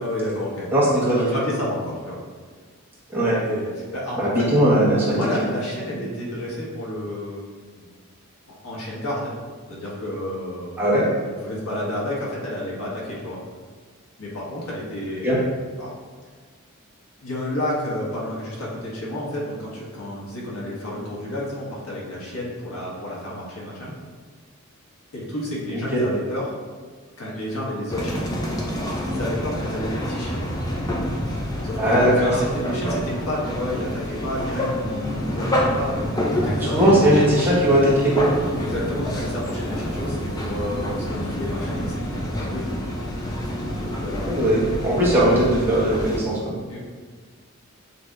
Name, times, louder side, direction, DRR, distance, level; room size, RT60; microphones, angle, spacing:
voice 1, 0.0-0.7 1.1-2.2 3.4-4.6 5.0-7.5 7.8-7.9 8.6-9.4 9.7-10.8 11.3-13.4 14.2-15.4 15.8-15.9 17.2-23.9 25.1-26.5 27.2-28.3 29.0-30.4 31.6-31.9 32.2-37.4 38.6-42.7 43.8-44.4 46.7-46.8, left 1 dB, 90° left, -5 dB, 1.4 m, -30 dB
voice 2, 0.7-1.3 3.1-3.4 4.2-5.2 10.8-11.0 15.2-15.4 25.7-26.0 31.8-32.4 36.7-38.3 44.3-46.5, right 1 dB, 10° right, -8 dB, 1.2 m, -19 dB
sound 1, 27.9-46.2, equal, 15° left, 0.5 m, -27 dB
7.3 x 2.9 x 2.4 m, 1.5 s
head